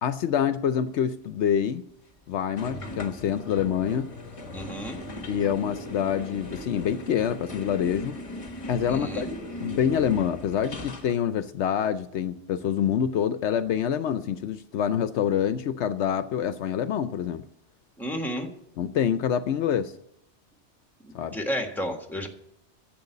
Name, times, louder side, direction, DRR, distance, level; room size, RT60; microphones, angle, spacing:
voice 1, 0.0-1.8 2.3-4.1 5.3-8.2 8.7-9.3 9.6-17.4 18.8-19.9 21.1-21.3, left 8 dB, 75° left, 0.9 m, -26 dB
sound 1, 2.6-11.1, left 1 dB, 30° left, 1.2 m, -38 dB
voice 2, 4.5-5.0 8.9-9.3 18.0-18.5 21.0-22.3, equal, ahead, 1.5 m, -32 dB
10.5 x 7.8 x 8.2 m
omnidirectional pair, 1.2 m